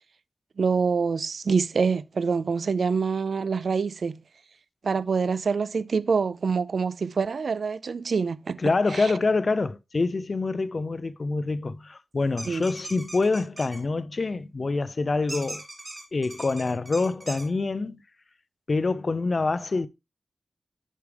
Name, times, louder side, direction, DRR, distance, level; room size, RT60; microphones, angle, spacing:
voice 1, 0.6-4.1 4.8-8.6 8.9-9.1 12.5-12.7, right 5 dB, 70° right, 0.4 m, -26 dB
voice 2, 8.6-15.6 16.1-18.0 18.7-19.9, left 3 dB, 45° left, 0.5 m, -26 dB
sound 1, 12.4-13.8 15.3-17.4, right 1 dB, 30° right, 3.4 m, -39 dB
11.0 x 4.8 x 3.3 m
wide cardioid pair, 105°, 0 cm